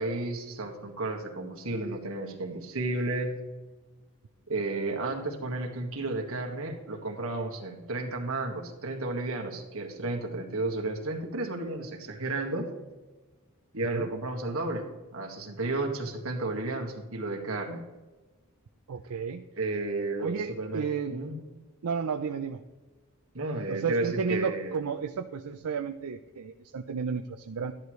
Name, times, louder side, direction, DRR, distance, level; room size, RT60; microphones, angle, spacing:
voice 1, 0.0-3.4 4.5-12.7 13.7-17.8 19.6-21.3 23.3-24.8, right 2 dB, 70° right, 2 dB, 1.7 m, -32 dB
voice 2, 18.9-19.4 20.2-21.2 21.8-22.6 23.7-27.7, right 5 dB, 85° right, 7 dB, 0.5 m, -32 dB
13.5 x 10.5 x 3.2 m, 1.2 s
head